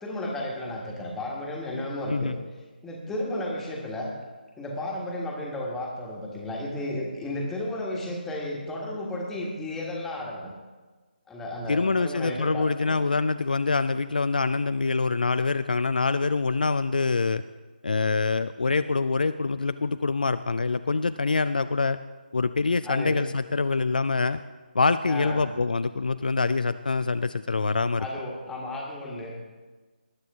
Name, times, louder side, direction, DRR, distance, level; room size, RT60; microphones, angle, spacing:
voice 1, 0.0-2.3 2.8-4.1 4.6-10.5 11.3-13.0 22.7-23.2 25.1-25.5 28.0-29.4, left 1 dB, 5° left, -2 dB, 1.5 m, -33 dB
voice 2, 11.7-17.4 17.8-22.0 22.3-24.4 24.7-28.1, left 4 dB, 60° left, 11 dB, 0.4 m, -25 dB
19.0 x 9.2 x 3.6 m, 1.3 s
figure-of-eight pair, 150°, 5 cm